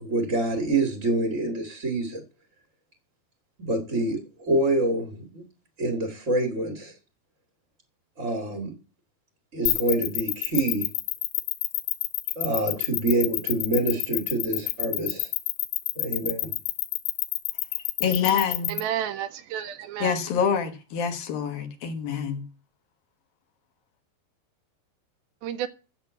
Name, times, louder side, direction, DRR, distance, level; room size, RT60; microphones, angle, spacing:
voice 1, 0.0-2.2 3.6-5.4 5.8-6.9 8.2-8.7 9.5-10.9 12.3-15.3 15.9-16.5, right 2 dB, 35° right, 1.3 m, -26 dB
sound 1, 9.7-18.8, left 18 dB, 90° left, 3.0 m, -27 dB
voice 2, 18.0-18.8 20.0-22.4, left 7 dB, 70° left, 2.9 m, -26 dB
voice 3, 18.7-20.2 25.4-25.7, right 10 dB, 75° right, 2.4 m, -31 dB
10.5 x 7.4 x 8.1 m
omnidirectional pair, 4.7 m